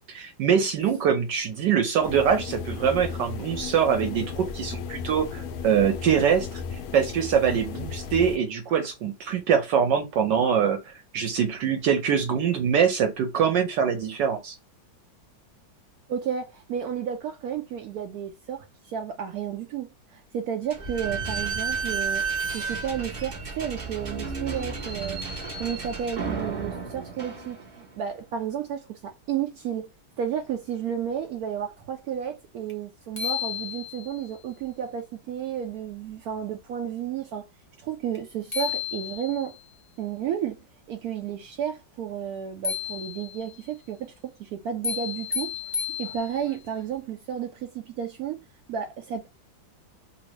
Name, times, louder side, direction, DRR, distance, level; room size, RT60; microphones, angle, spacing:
voice 1, 0.1-14.6, right 7 dB, 70° right, 1.2 m, -24 dB
sound 1, 2.0-8.4, left 6 dB, 85° left, 0.8 m, -35 dB
voice 2, 16.1-22.2 22.5-25.2 25.6-29.9 30.2-37.5 37.8-39.6 40.0-40.6 40.9-45.5 46.0-48.4 48.7-49.3, right 8 dB, 85° right, 0.8 m, -32 dB
Slam / Squeak, 20.7-28.0, right 4 dB, 40° right, 0.6 m, -32 dB
sound 2, 32.7-32.8 33.2-34.2 38.1-38.2 38.5-39.6 42.6-43.5 44.8-46.6, left 8 dB, 45° left, 0.3 m, -32 dB
2.9 x 2.8 x 2.9 m
omnidirectional pair, 2.1 m